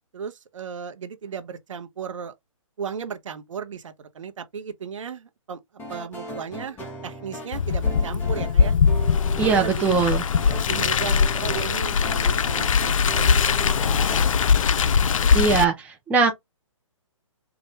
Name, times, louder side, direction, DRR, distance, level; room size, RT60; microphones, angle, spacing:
voice 1, 0.1-2.3 2.8-5.6 5.9-8.7 9.4-10.0 10.7-14.9 15.2-15.4, right 6 dB, 65° right, 1.0 m, -35 dB
sound 1, 5.8-14.2, right 1 dB, 10° left, 1.3 m, -37 dB
Car, 7.5-15.6, left 6 dB, 75° left, 0.4 m, -21 dB
voice 2, 9.4-10.2 15.3-16.3, right 5 dB, 10° right, 0.6 m, -21 dB
4.8 x 2.5 x 3.4 m
hypercardioid pair, 145°, 17 cm